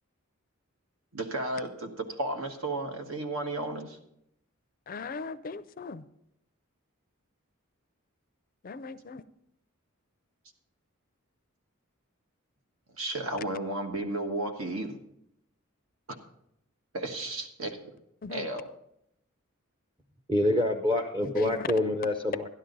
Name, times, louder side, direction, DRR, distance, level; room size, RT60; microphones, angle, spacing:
voice 1, 1.1-4.0 13.0-15.0 16.1-16.2 16.9-17.8 18.3-18.6, right 2 dB, 80° right, 5 dB, 1.3 m, -33 dB
voice 2, 4.9-6.0 8.6-9.2 18.2-18.5 21.2-21.7, left 4 dB, 40° left, 14 dB, 0.4 m, -38 dB
voice 3, 20.3-22.5, left 1 dB, 20° right, 3 dB, 0.6 m, -26 dB
12.0 x 11.5 x 3.9 m, 0.77 s
head